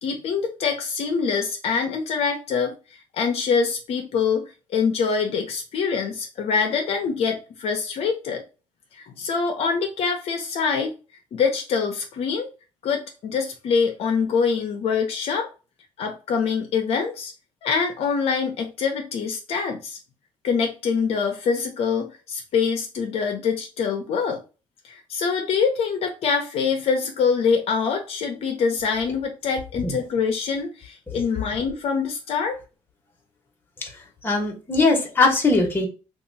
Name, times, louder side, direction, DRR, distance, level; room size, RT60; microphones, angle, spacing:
voice 1, 0.0-8.4 8.9-10.9 11.3-12.5 12.8-15.5 16.0-17.3 17.6-20.0 20.4-24.4 24.8-32.6, left 5 dB, 60° left, 3 dB, 0.7 m, -24 dB
voice 2, 34.2-35.9, left 3 dB, 15° left, 0 dB, 1.1 m, -20 dB
2.8 x 2.4 x 4.0 m, 0.33 s
cardioid pair, 120°, 12 cm